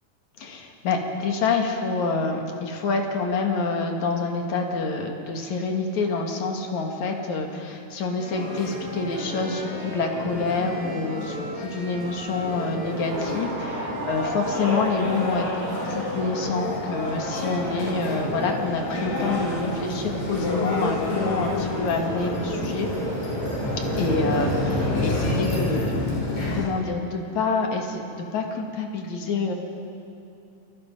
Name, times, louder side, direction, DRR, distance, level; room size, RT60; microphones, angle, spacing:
voice 1, 0.4-22.9 24.0-26.0 26.5-29.5, left 4 dB, 60° left, 2 dB, 3.1 m, -27 dB
Wind instrument woodwind instrument, 8.1-16.2, right 2 dB, 60° right, 3.9 m, -41 dB
sound 1, 8.3-26.6, left 2 dB, 85° left, 9.0 m, -29 dB
sound 2, 13.1-26.0, right 2 dB, 40° right, 3.3 m, -37 dB
28.5 x 21.0 x 5.5 m, 2.6 s
omnidirectional pair, 3.9 m